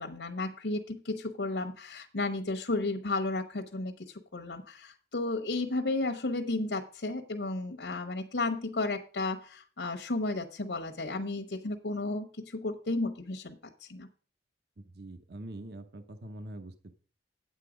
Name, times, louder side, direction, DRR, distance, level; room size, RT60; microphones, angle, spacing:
voice 1, 0.0-14.1, left 2 dB, 80° left, 4 dB, 1.0 m, -33 dB
voice 2, 14.8-16.9, right 1 dB, 60° right, 10 dB, 0.8 m, -44 dB
9.2 x 8.3 x 5.0 m, 0.41 s
head